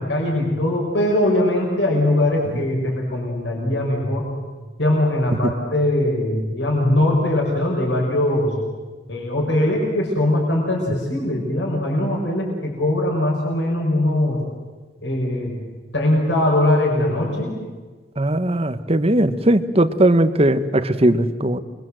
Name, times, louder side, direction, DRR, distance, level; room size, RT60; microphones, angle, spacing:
voice 1, 0.0-4.3 4.8-8.5 9.1-14.4 15.0-15.5 15.9-17.6, left 1 dB, 80° left, -1 dB, 5.8 m, -21 dB
voice 2, 18.2-21.6, right 1 dB, 35° right, 12 dB, 1.2 m, -18 dB
28.0 x 23.0 x 7.8 m, 1.3 s
head